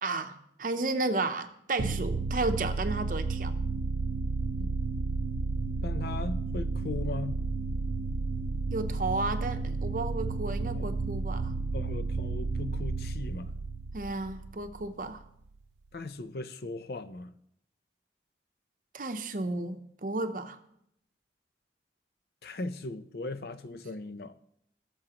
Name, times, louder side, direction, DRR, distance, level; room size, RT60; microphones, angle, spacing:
voice 1, 0.0-3.5 8.7-11.5 13.9-15.2 18.9-20.6, right 2 dB, 45° right, 0.7 m, -33 dB
sound 1, 1.8-15.2, right 3 dB, 90° right, 0.6 m, -32 dB
voice 2, 5.8-7.4 10.7-10.9 11.7-13.5 15.9-17.4 22.4-24.4, left 2 dB, 60° left, 0.5 m, -38 dB
17.5 x 7.0 x 2.9 m
head